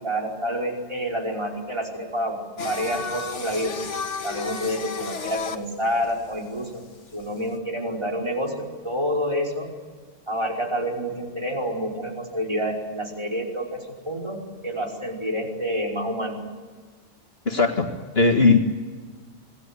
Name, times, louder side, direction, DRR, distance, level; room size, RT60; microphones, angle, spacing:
voice 1, 0.0-2.4 2.6-3.7 4.2-6.8 7.1-9.7 10.3-14.4 14.6-16.4, equal, 25° right, 0 dB, 5.1 m, -28 dB
Singing, 2.6-7.5, left 5 dB, 75° left, 1.8 m, -33 dB
voice 2, 17.5-18.6, left 3 dB, 55° left, 2 dB, 2.3 m, -19 dB
27.0 x 19.0 x 9.8 m, 1.5 s
omnidirectional pair, 1.2 m